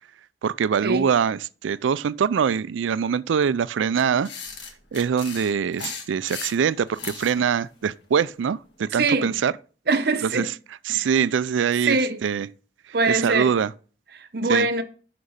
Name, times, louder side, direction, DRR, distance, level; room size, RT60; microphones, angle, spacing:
voice 1, 0.4-4.3 4.9-9.5 10.3-10.4 10.9-12.5 13.1-13.7 14.5-14.7, right 7 dB, 85° right, 0.4 m, -23 dB
sound 1, 3.9-7.4, left 5 dB, 70° left, 1.6 m, -36 dB
voice 2, 8.9-9.4 9.9-10.5 10.9-11.1 11.8-12.2 12.9-13.5 14.1-14.8, right 3 dB, 55° right, 0.8 m, -23 dB
6.5 x 6.1 x 5.5 m
head